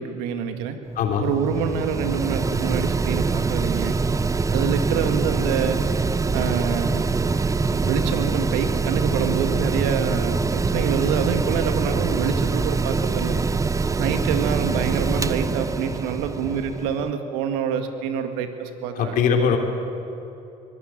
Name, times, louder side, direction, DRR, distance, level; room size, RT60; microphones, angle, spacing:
voice 1, 0.0-0.8 1.2-4.0 4.5-5.8 6.3-7.3 7.7-13.4 14.0-19.2, right 7 dB, 90° right, 7 dB, 2.0 m, -26 dB
Mechanical fan, 0.8-17.1, right 4 dB, 20° right, 0.7 m, -24 dB
voice 2, 1.0-1.3 18.9-19.6, left 7 dB, 65° left, 3 dB, 3.4 m, -21 dB
22.5 x 18.5 x 9.0 m, 2.9 s
supercardioid pair, 85°, 15 cm